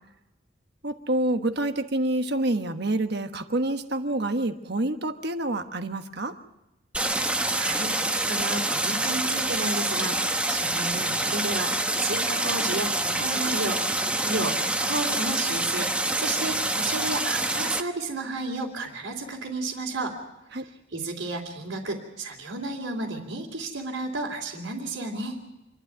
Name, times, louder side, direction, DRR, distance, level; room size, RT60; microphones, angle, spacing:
voice 1, 0.8-6.4 20.5-20.7, right 1 dB, 55° right, 8 dB, 1.3 m, -27 dB
Stream, 6.9-17.8, right 2 dB, 5° right, 0.8 m, -26 dB
voice 2, 7.5-13.8 14.1-20.1 20.5-25.4, right 2 dB, 85° right, -6 dB, 3.2 m, -32 dB
27.0 x 12.0 x 9.4 m, 0.97 s
head